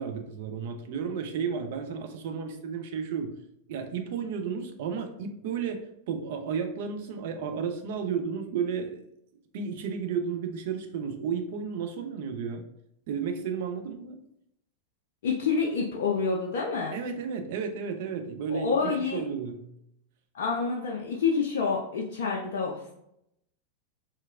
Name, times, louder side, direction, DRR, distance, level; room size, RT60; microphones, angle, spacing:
voice 1, 0.0-3.3 3.7-9.0 9.5-12.6 13.1-14.2 16.9-19.6, right 6 dB, 50° right, 6 dB, 0.4 m, -33 dB
voice 2, 15.2-17.0 18.5-19.2 20.3-22.9, left 5 dB, 55° left, -2 dB, 0.4 m, -28 dB
2.7 x 2.3 x 2.4 m, 0.77 s
figure-of-eight pair, 90°, 0 cm